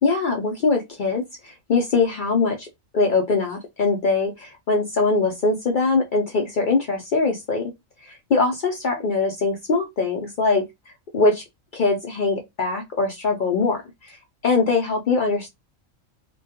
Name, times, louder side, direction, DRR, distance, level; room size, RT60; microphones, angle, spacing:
voice 1, 0.0-2.7 2.9-7.7 8.0-11.4 11.7-14.2 14.4-15.5, left 3 dB, 65° left, 0.4 m, -22 dB
2.2 x 2.2 x 2.7 m
omnidirectional pair, 1.4 m